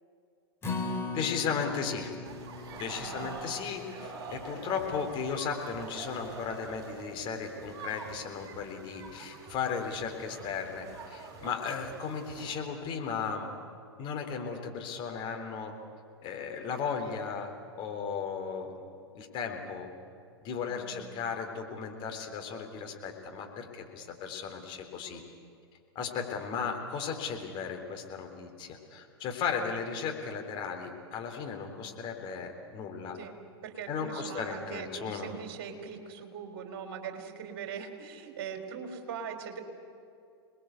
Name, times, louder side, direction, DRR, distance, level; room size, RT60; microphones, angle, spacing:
Acoustic guitar, 0.6-6.9 7.3-7.4 7.8-7.9, left 3 dB, 15° left, 3.6 m, -41 dB
voice 1, 1.1-2.2 2.7-13.5 14.0-15.7 16.2-18.8 19.1-19.9 20.4-25.2 26.0-33.2 33.9-35.3, left 6 dB, 35° left, 3 dB, 3.6 m, -35 dB
sound 1, 2.2-12.6, right 4 dB, 25° right, 6.6 m, -45 dB
voice 2, 3.0-3.4 20.6-21.1 33.1-33.4 33.6-39.6, right 7 dB, 50° right, 5 dB, 4.0 m, -41 dB
27.5 x 20.5 x 8.1 m, 2.4 s
figure-of-eight pair, 100°, 14 cm